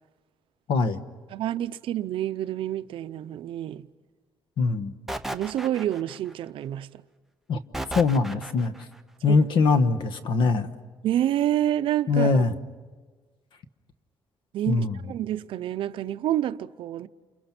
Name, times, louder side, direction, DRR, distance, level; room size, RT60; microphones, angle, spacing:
voice 1, 0.7-1.0 4.6-4.9 7.5-7.6 7.9-8.7 9.2-10.7 12.1-12.5 14.7-15.0, left 4 dB, 60° left, 1.3 m, -22 dB
voice 2, 1.3-3.9 5.3-7.0 9.3-9.4 11.0-12.5 14.5-17.1, right 12 dB, 70° right, 0.7 m, -28 dB
sound 1, 5.1-6.3 7.7-8.8, right 1 dB, 5° right, 0.8 m, -34 dB
29.5 x 29.0 x 6.0 m
cardioid pair, 165°, 9 cm